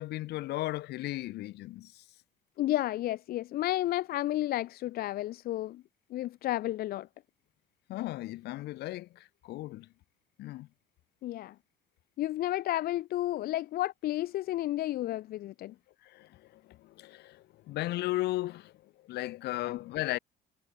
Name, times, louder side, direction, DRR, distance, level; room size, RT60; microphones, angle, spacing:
voice 1, 0.0-2.0 7.9-9.9 10.4-10.7 16.0-18.7 19.0-20.2, left 16 dB, 80° left, 2.0 m, -36 dB
voice 2, 2.6-5.8 6.1-7.1 11.2-11.5 12.2-15.7 19.6-19.8, left 15 dB, 65° left, 0.5 m, -32 dB
cardioid pair, 110°, 17 cm